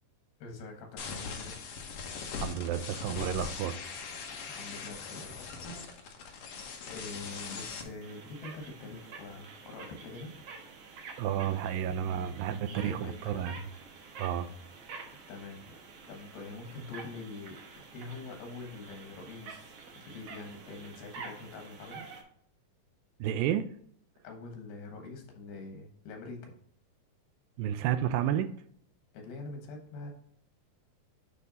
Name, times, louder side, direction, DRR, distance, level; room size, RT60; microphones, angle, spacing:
voice 1, 0.4-1.6 4.5-5.5 6.8-10.3 11.3-11.5 12.0-12.4 12.7-13.6 15.3-15.6 16.1-17.6 17.9-22.0 24.2-26.5 29.1-30.1, left 3 dB, 85° left, 3 dB, 3.3 m, -44 dB
sound 1, 1.0-7.8, left 5 dB, 65° left, 1.6 m, -40 dB
voice 2, 2.4-3.8 11.2-13.6 14.2-14.5 23.2-23.7 27.6-28.5, right 10 dB, 80° right, 10 dB, 2.1 m, -31 dB
sound 2, 7.1-22.2, right 5 dB, 60° right, 1.6 m, -49 dB
9.6 x 3.4 x 4.0 m, 0.64 s
omnidirectional pair, 4.2 m